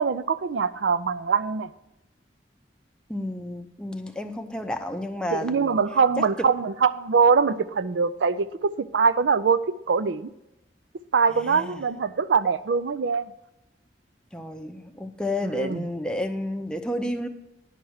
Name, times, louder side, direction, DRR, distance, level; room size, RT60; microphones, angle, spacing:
voice 1, 0.0-1.7 5.3-9.6 9.9-10.3 11.1-13.3 15.5-15.8, right 5 dB, 85° right, 15 dB, 0.5 m, -23 dB
voice 2, 3.1-5.8 6.2-6.5 11.3-11.8 14.3-17.3, left 1 dB, 5° left, 5 dB, 0.6 m, -31 dB
10.0 x 5.8 x 6.4 m, 0.91 s
head